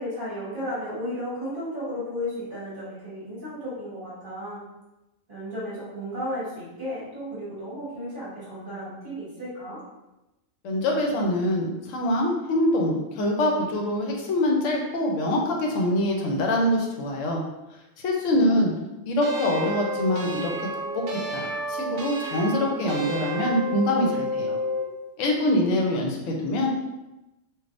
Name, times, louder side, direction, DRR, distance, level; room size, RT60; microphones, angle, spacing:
voice 1, 0.0-4.6 5.3-9.8 18.3-18.7, equal, 45° right, -9 dB, 1.2 m, -34 dB
voice 2, 10.6-17.4 18.0-18.7 19.0-20.7 21.1-24.6 25.2-26.7, left 1 dB, 75° left, 0 dB, 1.0 m, -24 dB
sound 1, 19.2-24.9, equal, 65° right, 0.6 m, -31 dB
3.3 x 2.5 x 2.5 m, 0.97 s
omnidirectional pair, 1.4 m